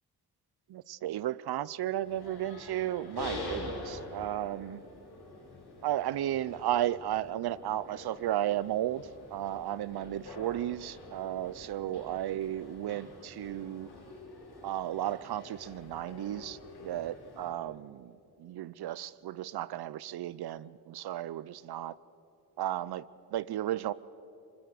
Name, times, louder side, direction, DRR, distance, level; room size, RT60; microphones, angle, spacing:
voice 1, 0.7-4.8 5.8-13.9 14.6-21.9 22.6-23.0 23.3-23.9, right 12 dB, 70° right, 19 dB, 0.7 m, -34 dB
sound 1, 2.0-17.5, left 2 dB, 75° left, 5.4 m, -46 dB
24.5 x 21.0 x 6.6 m, 2.8 s
supercardioid pair, 55°, 39 cm